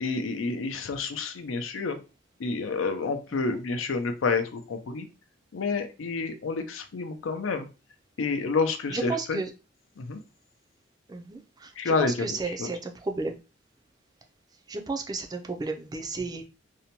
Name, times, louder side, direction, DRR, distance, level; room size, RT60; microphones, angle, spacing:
voice 1, 0.0-2.0 2.4-5.1 5.5-7.7 8.2-9.4 10.0-10.2 11.8-12.7, left 4 dB, 90° left, 8 dB, 0.5 m, -29 dB
voice 2, 8.9-9.5 11.1-13.4 14.7-16.4, right 3 dB, 20° right, 4 dB, 0.3 m, -33 dB
2.7 x 2.1 x 2.8 m, 0.30 s
head